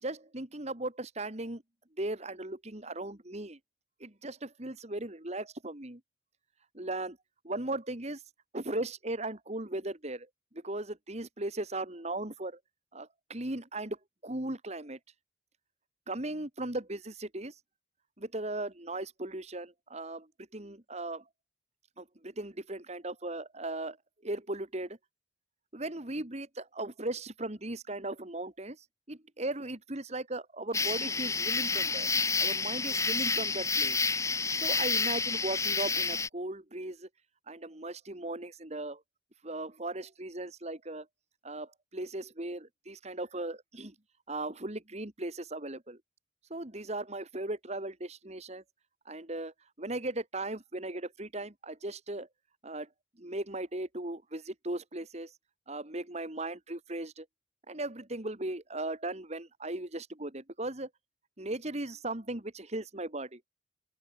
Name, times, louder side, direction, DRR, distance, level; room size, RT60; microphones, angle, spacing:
voice 1, 0.0-1.6 2.0-3.6 4.0-6.0 6.7-7.2 7.4-8.2 8.5-10.3 10.6-12.6 12.9-14.0 14.2-15.0 16.1-17.6 18.2-20.3 20.5-21.2 22.0-24.0 24.2-25.0 25.7-32.1 32.4-34.0 34.6-37.1 37.5-39.0 39.4-41.1 41.4-43.9 44.3-46.0 46.5-48.6 49.1-52.3 52.6-52.9 53.2-55.3 55.7-57.3 57.7-60.9 61.4-63.4, right 2 dB, 35° right, 2.1 m, -37 dB
sound 1, 30.7-36.3, left 4 dB, 15° left, 1.4 m, -29 dB
open air
head